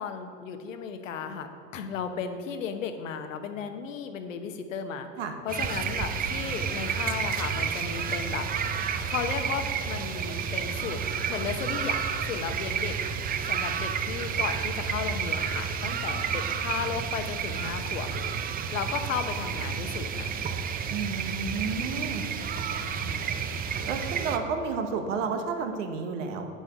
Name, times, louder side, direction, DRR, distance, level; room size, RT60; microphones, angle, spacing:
voice 1, 0.0-5.1 5.4-8.5 9.1-13.0 13.5-18.4 18.7-20.5 23.0-23.3, left 6 dB, 75° left, 8 dB, 1.0 m, -35 dB
sound 1, 5.5-24.4, right 7 dB, 25° right, 0.5 m, -31 dB
voice 2, 20.9-22.3 23.8-26.5, right 5 dB, 65° right, 5 dB, 1.3 m, -31 dB
8.7 x 6.3 x 5.2 m, 2.2 s
hypercardioid pair, 90°, 39 cm